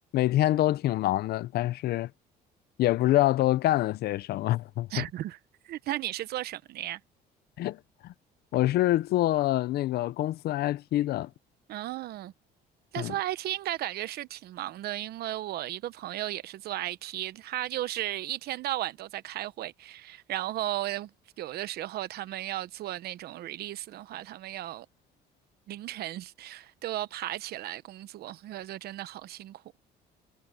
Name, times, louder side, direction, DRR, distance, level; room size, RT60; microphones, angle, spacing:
voice 1, 0.1-2.1 2.8-5.0 7.6-8.1 8.5-11.3 13.0-13.1, left 15 dB, 70° left, 0.7 m, -26 dB
voice 2, 4.9-5.4 5.6-7.0 11.7-12.3 12.9-24.9 25.7-29.6, right 14 dB, 70° right, 1.0 m, -35 dB
cardioid pair, 110°, 17 cm